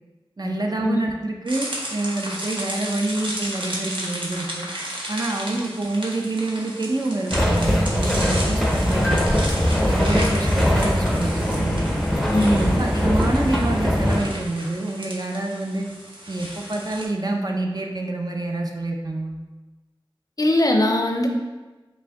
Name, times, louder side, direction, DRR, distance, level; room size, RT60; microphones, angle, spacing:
voice 1, 0.4-4.7 5.1-9.3 9.8-11.8 12.4-15.9 16.3-19.4, right 2 dB, 45° right, 1 dB, 0.5 m, -27 dB
sound 1, 1.5-17.1, right 1 dB, 65° right, 0.8 m, -34 dB
sound 2, 7.3-14.2, equal, ahead, 0.6 m, -21 dB
voice 2, 12.3-12.6 20.4-21.3, left 1 dB, 40° left, 2 dB, 0.5 m, -21 dB
5.2 x 2.1 x 3.5 m, 1.2 s
wide cardioid pair, 40°, 9 cm